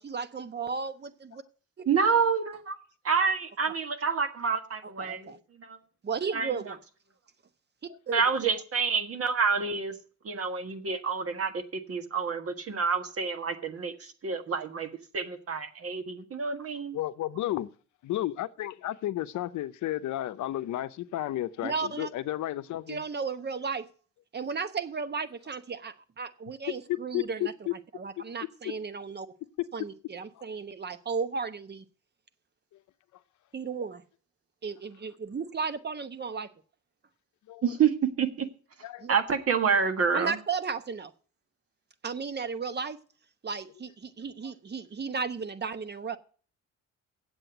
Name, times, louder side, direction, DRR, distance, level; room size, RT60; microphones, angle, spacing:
voice 1, 0.0-1.4 4.8-5.4 6.0-6.8 7.8-8.2 21.6-22.1 22.9-23.9 24.3-29.3 29.7-31.8 33.5-34.0 34.6-36.5 39.0-39.2 40.1-41.1 42.0-43.0 43.4-46.2, right 5 dB, 35° right, 1.0 m, -34 dB
voice 2, 1.9-2.8 3.0-5.3 5.6-5.8 6.3-6.5 8.1-9.9 10.2-17.0 37.6-38.5 39.1-40.4, right 5 dB, 50° right, 1.6 m, -28 dB
voice 3, 16.9-17.7 18.0-23.0 26.9-27.7 37.5-37.6 38.8-39.1, left 14 dB, 75° left, 0.7 m, -32 dB
8.0 x 7.7 x 7.9 m
cardioid pair, 90°, 30 cm